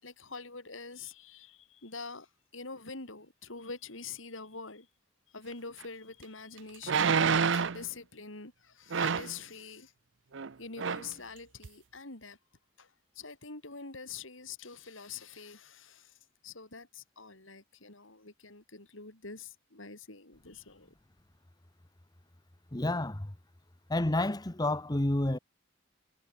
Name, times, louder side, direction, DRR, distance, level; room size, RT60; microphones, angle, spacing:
voice 1, 0.0-2.3 2.5-4.9 5.3-9.9 10.6-12.4 12.8-16.2 16.4-20.9, left 4 dB, 80° left, 4.8 m, -45 dB
sound 1, 5.8-5.9 6.8-7.8 8.9-9.4 10.3-10.5 10.8-11.1 11.6-11.7, right 6 dB, 65° right, 0.7 m, -28 dB
voice 2, 22.7-23.3 23.9-25.4, left 1 dB, 20° left, 1.1 m, -29 dB
head